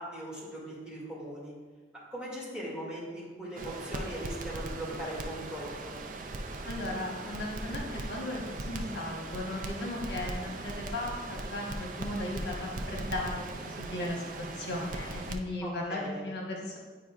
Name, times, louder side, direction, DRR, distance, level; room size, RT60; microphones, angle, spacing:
voice 1, 0.0-1.5 2.1-5.9 15.6-16.2, right 1 dB, 5° right, -7 dB, 2.0 m, -39 dB
Crackle, 3.6-15.4, right 2 dB, 45° right, 0.4 m, -39 dB
voice 2, 6.6-16.8, left 1 dB, 70° left, -2 dB, 1.2 m, -36 dB
9.3 x 5.1 x 2.4 m, 1.4 s
head